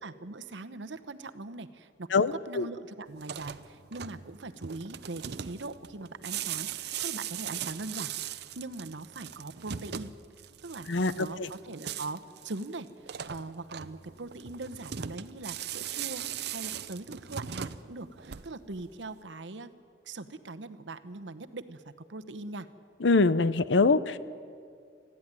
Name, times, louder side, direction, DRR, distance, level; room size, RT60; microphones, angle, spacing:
voice 1, 0.0-10.1 10.6-19.7 20.0-22.7, right 3 dB, 85° right, 10 dB, 1.0 m, -41 dB
voice 2, 2.1-2.7 10.9-11.5 23.0-24.2, left 3 dB, 90° left, 15 dB, 0.7 m, -24 dB
sound 1, 3.1-18.8, right 9 dB, 60° right, 0.7 m, -39 dB
20.0 x 14.5 x 9.8 m, 2.2 s
head